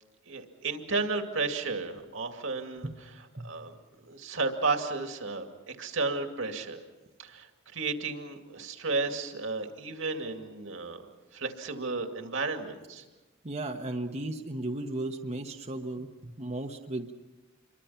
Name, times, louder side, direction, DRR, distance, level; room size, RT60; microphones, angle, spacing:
voice 1, 0.3-2.9 3.4-3.7 4.1-6.8 7.2-11.1 11.3-13.0, right 3 dB, 70° right, 4 dB, 2.4 m, -33 dB
voice 2, 13.4-17.1, right 2 dB, 35° right, 2 dB, 1.1 m, -35 dB
28.0 x 24.0 x 5.8 m, 1.1 s
head